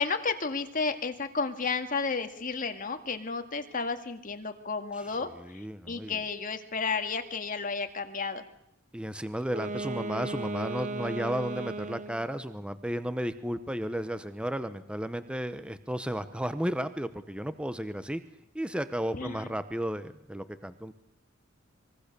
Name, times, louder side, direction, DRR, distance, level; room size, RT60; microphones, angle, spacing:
voice 1, 0.0-8.4 19.1-19.5, left 4 dB, 40° left, 7 dB, 2.1 m, -32 dB
voice 2, 5.4-6.2 8.9-18.2 18.5-20.9, equal, 5° right, 12 dB, 0.8 m, -33 dB
Wind instrument woodwind instrument, 9.4-12.3, right 2 dB, 40° right, 0.9 m, -36 dB
25.5 x 22.0 x 6.8 m, 0.80 s
head